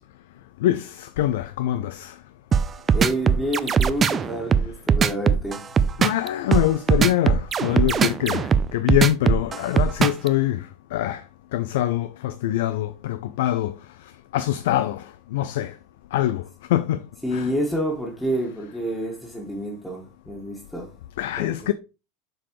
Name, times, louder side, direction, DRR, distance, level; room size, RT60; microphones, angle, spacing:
voice 1, 0.6-2.2 6.0-15.8 16.1-17.5 21.2-21.7, left 13 dB, 70° left, 0.4 m, -24 dB
sound 1, 2.5-10.3, right 6 dB, 30° right, 0.5 m, -20 dB
voice 2, 2.7-5.6 17.2-20.9 21.4-21.7, equal, 5° left, 1.8 m, -28 dB
7.4 x 4.7 x 3.1 m
hypercardioid pair, 90°, 0 cm